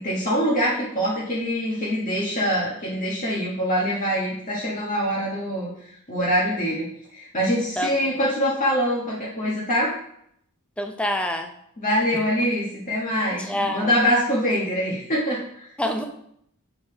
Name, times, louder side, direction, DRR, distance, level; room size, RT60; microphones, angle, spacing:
voice 1, 0.0-5.7 6.1-9.9 11.8-15.7, equal, 35° left, -6 dB, 1.2 m, -24 dB
voice 2, 7.8-8.1 10.8-11.5 13.5-14.0 15.8-16.0, left 1 dB, 5° left, 5 dB, 0.5 m, -26 dB
7.8 x 3.5 x 4.6 m, 0.72 s
head